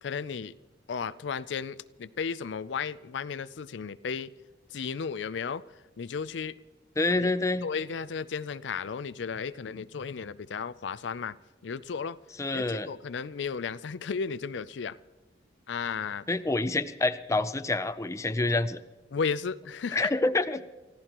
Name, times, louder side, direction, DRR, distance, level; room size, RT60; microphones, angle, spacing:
voice 1, 0.0-0.5 0.9-4.3 4.7-5.6 6.0-6.6 7.2-7.3 7.6-11.4 11.6-12.2 12.5-15.0 15.7-16.3 19.1-20.1, left 6 dB, 70° left, 15 dB, 0.4 m, -34 dB
voice 2, 7.0-7.7 12.4-12.9 16.3-18.8 19.9-20.6, left 2 dB, 15° left, 11 dB, 0.5 m, -27 dB
29.5 x 15.0 x 3.0 m, 1.2 s
head